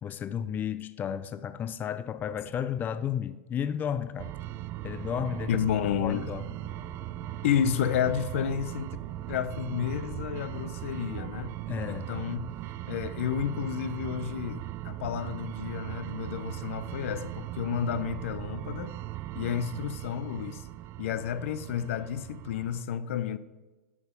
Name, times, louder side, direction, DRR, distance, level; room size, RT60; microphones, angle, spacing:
voice 1, 0.0-4.3 4.8-5.6 6.0-6.5 11.7-12.1, left 8 dB, 25° left, 0.4 m, -33 dB
sound 1, 3.7-16.2, right 1 dB, 20° right, 2.4 m, -54 dB
sound 2, 4.2-22.8, right 15 dB, 35° right, 0.4 m, -39 dB
voice 2, 5.5-6.3 7.4-9.0 9.3-11.5 11.9-12.5 12.9-19.0 19.3-20.7 21.0-23.4, left 9 dB, 70° left, 0.6 m, -31 dB
9.4 x 6.0 x 5.3 m
hypercardioid pair, 110°, 7 cm